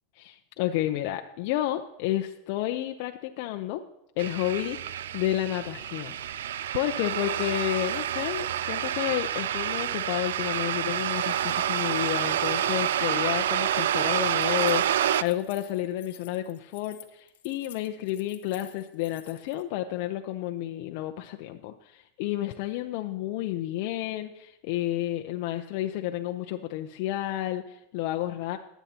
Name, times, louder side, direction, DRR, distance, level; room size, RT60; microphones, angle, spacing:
voice 1, 0.2-3.8 4.2-6.4 6.7-28.6, left 13 dB, 60° left, 5 dB, 0.6 m, -31 dB
sound 1, 4.2-15.2, right 10 dB, 90° right, 0.3 m, -28 dB
Keys jangling, 13.6-19.6, left 12 dB, 85° left, 0.8 m, -52 dB
21.5 x 8.1 x 2.9 m, 0.92 s
supercardioid pair, 130°, 0 cm